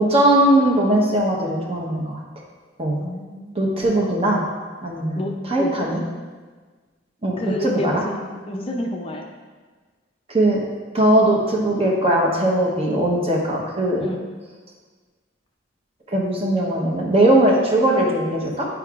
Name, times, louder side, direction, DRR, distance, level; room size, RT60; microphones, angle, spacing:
voice 1, 0.0-2.2 2.8-3.0 3.5-4.4 4.8-5.2 5.5-6.0 7.2-8.0 10.3-10.6 10.9-14.0 16.1-18.7, right 1 dB, 30° right, -2 dB, 1.0 m, -19 dB
voice 2, 3.0-3.7 5.1-5.3 5.6-5.9 7.4-9.3 14.0-14.3, left 1 dB, 30° left, 1 dB, 0.5 m, -29 dB
9.7 x 4.7 x 2.5 m, 1.4 s
head